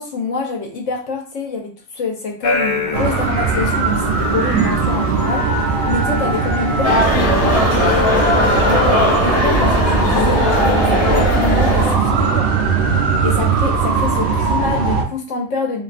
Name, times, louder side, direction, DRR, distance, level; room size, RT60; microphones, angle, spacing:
voice 1, 0.0-10.5 11.1-12.5 13.2-15.8, left 4 dB, 65° left, 1 dB, 0.9 m, -26 dB
sound 1, 2.4-11.3, left 3 dB, 85° left, 1.1 m, -24 dB
sound 2, 2.9-15.0, right 5 dB, 80° right, 0.5 m, -19 dB
sound 3, 6.8-11.9, equal, 15° left, 0.7 m, -18 dB
2.6 x 2.3 x 2.4 m, 0.41 s
omnidirectional pair, 1.5 m